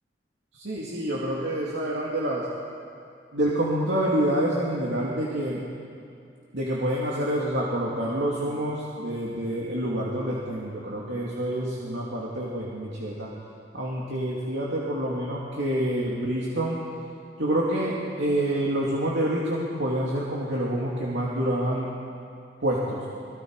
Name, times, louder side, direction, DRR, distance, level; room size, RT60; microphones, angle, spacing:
voice 1, 0.6-2.5 3.3-5.6 6.5-13.3 13.7-16.8 17.4-21.9 22.6-23.0, right 1 dB, 70° right, -5 dB, 2.6 m, -27 dB
29.5 x 21.5 x 4.8 m, 2.4 s
head